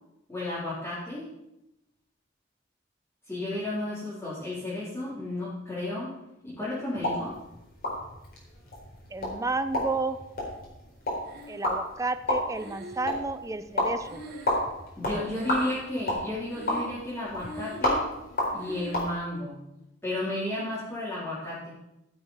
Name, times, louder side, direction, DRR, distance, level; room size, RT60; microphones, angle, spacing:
voice 1, 0.3-1.2 3.3-6.2 6.4-7.4 15.0-18.0 18.5-19.6 20.0-21.7, left 1 dB, 15° left, -10 dB, 3.5 m, -33 dB
sound 1, 6.9-19.1, left 1 dB, 50° left, 4.2 m, -32 dB
voice 2, 9.1-10.2 11.5-14.2, right 3 dB, 15° right, 9 dB, 0.7 m, -31 dB
Breathing, 11.2-12.0 12.5-15.0 15.2-16.1 16.4-17.0 17.3-18.0 18.6-19.1, equal, 50° right, 3.4 m, -43 dB
15.0 x 6.4 x 5.6 m, 0.88 s
head